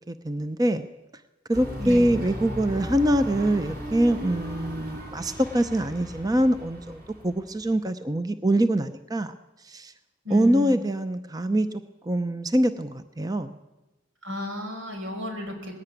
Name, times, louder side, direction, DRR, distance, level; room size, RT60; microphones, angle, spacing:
voice 1, 0.1-0.9 1.5-9.3 9.6-9.9 10.3-11.7 12.0-13.6, right 1 dB, 20° right, 10 dB, 0.6 m, -24 dB
sound 1, 1.5-7.7, equal, 45° right, 4.5 m, -36 dB
voice 2, 10.3-10.8 14.2-15.8, left 1 dB, 90° right, 4 dB, 5.2 m, -32 dB
20.0 x 17.0 x 9.1 m, 1.1 s
head